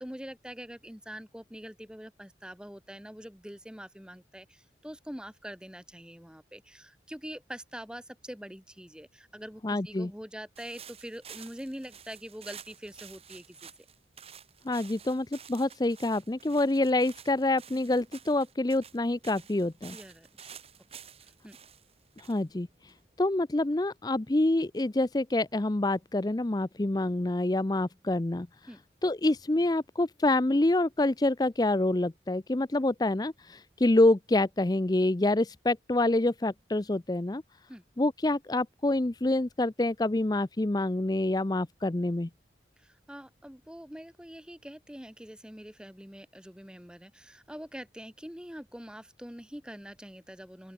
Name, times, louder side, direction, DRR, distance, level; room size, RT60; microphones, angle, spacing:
voice 1, 0.0-13.7 19.9-20.5 21.2-21.6 28.7-28.8 37.7-37.8 42.8-50.7, equal, 5° right, 1.6 m, -44 dB
voice 2, 9.6-10.1 14.6-20.0 22.2-28.5 29.0-37.4 38.0-42.3, left 2 dB, 20° left, 0.5 m, -27 dB
sound 1, 10.6-23.3, right 8 dB, 35° right, 6.1 m, -51 dB
open air
head